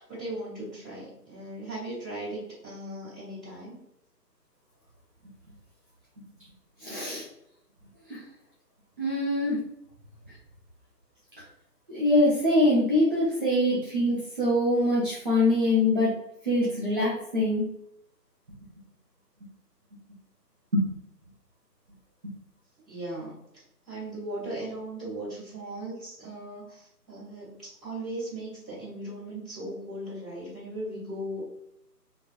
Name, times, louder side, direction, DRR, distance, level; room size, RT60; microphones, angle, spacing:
voice 1, 0.0-3.8 22.9-23.4 23.9-31.4, right 1 dB, ahead, -21 dB, 1.3 m, -38 dB
voice 2, 6.8-7.2 8.1-8.2 9.0-9.6 11.9-16.1 16.4-17.6 20.7-20.9 22.2-22.3, left 1 dB, 30° right, -8 dB, 0.8 m, -24 dB
3.2 x 3.1 x 2.5 m, 0.77 s
figure-of-eight pair, 145°, 49 cm